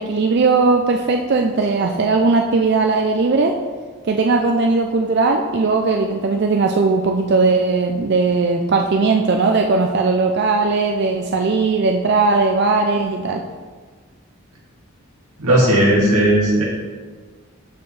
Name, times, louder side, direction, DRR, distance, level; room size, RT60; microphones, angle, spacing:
voice 1, 0.0-3.6 4.0-13.4, right 3 dB, 50° right, 3 dB, 0.4 m, -18 dB
voice 2, 15.4-16.6, right 1 dB, 90° right, -5 dB, 2.3 m, -15 dB
12.5 x 4.4 x 3.3 m, 1.5 s
head